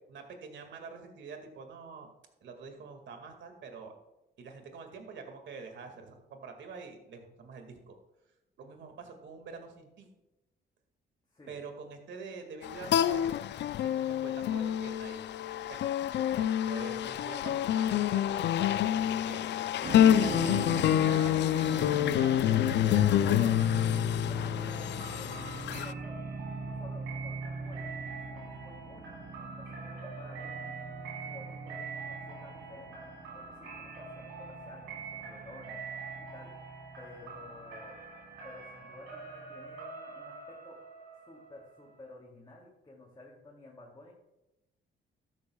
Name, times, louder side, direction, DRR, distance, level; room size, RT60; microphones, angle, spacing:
voice 1, 0.0-2.1 2.4-3.9 4.4-8.0 8.6-10.1 11.5-13.4 13.8-15.2 15.7-15.8 16.1-19.4 20.0-21.4 21.8-22.6 22.9-23.7, right 5 dB, 70° right, 5 dB, 2.1 m, -46 dB
sound 1, 12.6-25.9, left 11 dB, 60° left, 0.4 m, -27 dB
sound 2, 19.8-39.8, right 2 dB, 40° right, 3.6 m, -41 dB
voice 2, 22.7-23.2 24.2-25.3 25.7-26.2 26.4-30.7 31.2-32.9 33.3-36.5 37.0-38.0 38.4-40.8 41.3-44.1, left 2 dB, 20° left, -3 dB, 2.6 m, -52 dB
sound 3, 24.5-42.1, right 5 dB, 90° right, 4.4 m, -45 dB
13.5 x 12.0 x 2.3 m, 0.95 s
cardioid pair, 90°, 20 cm